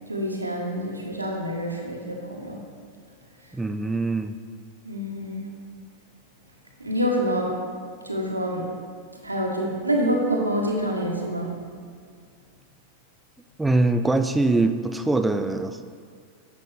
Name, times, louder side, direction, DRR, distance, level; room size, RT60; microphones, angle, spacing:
voice 1, 0.1-2.7 4.8-5.5 6.8-7.5 8.0-8.7 9.1-11.5, equal, 85° right, 1 dB, 1.4 m, -27 dB
voice 2, 3.5-4.3 13.6-15.8, right 2 dB, 5° right, 8 dB, 0.4 m, -23 dB
10.5 x 7.4 x 3.5 m, 2.1 s
figure-of-eight pair, 90°, 0 cm